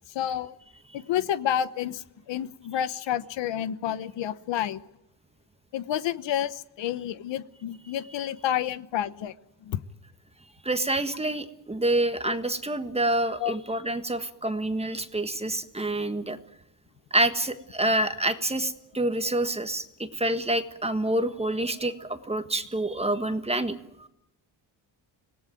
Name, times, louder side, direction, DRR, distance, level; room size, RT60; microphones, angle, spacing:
voice 1, 0.1-0.5 0.9-4.8 5.7-9.3 9.6-9.8 12.2-12.4 13.4-13.6, left 10 dB, 75° left, 14 dB, 1.1 m, -30 dB
voice 2, 10.6-16.4 17.1-24.1, right 1 dB, 15° right, 9 dB, 1.5 m, -27 dB
26.0 x 18.0 x 9.2 m, 0.85 s
cardioid pair, 105°, 44 cm